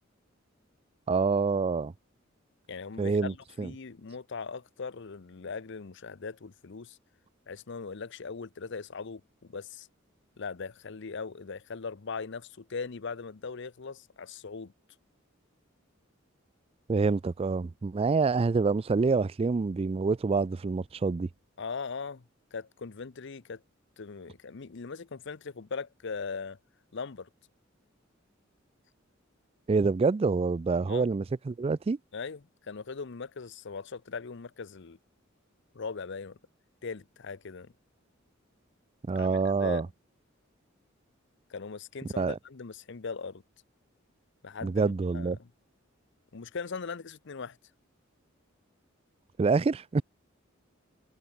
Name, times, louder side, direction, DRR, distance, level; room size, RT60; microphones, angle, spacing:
voice 1, 1.1-1.9 3.0-3.7 16.9-21.3 29.7-32.0 39.1-39.9 42.2-42.4 44.6-45.4 49.4-50.0, right 4 dB, 30° right, 0.3 m, -27 dB
voice 2, 2.7-7.0 7.5-9.9 10.4-14.7 21.6-22.2 22.5-23.6 24.0-26.6 26.9-27.3 30.8-31.1 32.1-35.0 35.7-36.4 36.8-37.7 39.1-39.8 41.5-43.4 44.4-45.5 46.3-47.6, left 5 dB, 60° left, 0.7 m, -39 dB
head